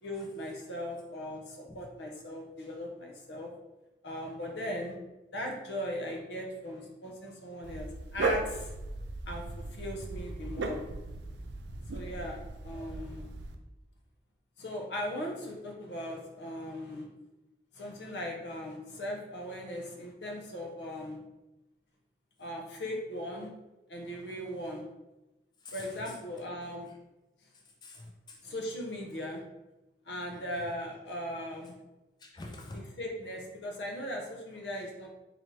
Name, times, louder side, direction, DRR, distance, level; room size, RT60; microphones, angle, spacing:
voice 1, 0.0-3.5 4.0-5.0 5.3-7.9 8.1-8.7 9.3-10.8 11.9-13.3 14.6-17.1 17.7-21.2 22.4-23.5 23.9-24.9 25.7-26.9 28.4-29.4 30.0-31.8 32.7-35.1, equal, 80° left, 1 dB, 0.8 m, -38 dB
Dog, 7.6-13.5, right 3 dB, 90° right, 0.4 m, -37 dB
voice 2, 25.6-26.2 27.8-28.4 30.6-30.7 32.2-33.0, left 2 dB, 25° left, 0 dB, 0.4 m, -46 dB
3.9 x 3.0 x 3.1 m, 1.0 s
head